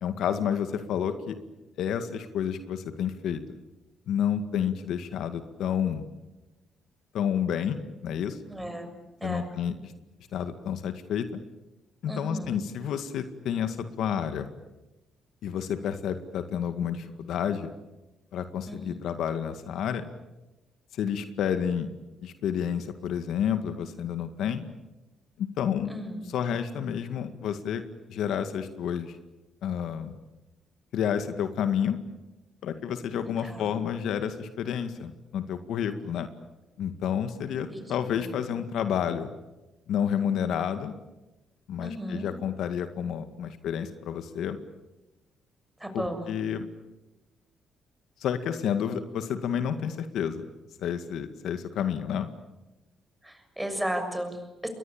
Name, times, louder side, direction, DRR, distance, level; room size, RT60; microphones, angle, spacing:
voice 1, 0.0-1.4 1.8-3.4 4.1-6.0 7.1-8.4 9.2-9.9 10.3-11.3 12.0-14.5 15.4-17.7 18.3-20.0 20.9-21.9 22.2-24.7 25.4-25.9 26.3-27.8 28.1-29.2 29.6-30.1 30.9-32.0 32.6-36.3 36.8-39.3 39.9-40.9 41.7-44.6 45.9-46.7 48.2-50.4 50.8-52.3, left 8 dB, 80° left, 9 dB, 2.0 m, -30 dB
voice 2, 8.5-8.9 9.2-9.5 12.1-12.5 18.7-19.0 25.9-26.2 33.4-33.7 37.7-38.3 41.8-42.3 45.8-46.3 53.2-54.7, equal, 10° right, 6 dB, 6.7 m, -35 dB
28.5 x 22.5 x 8.9 m, 1.0 s
cardioid pair, 90°, 0 cm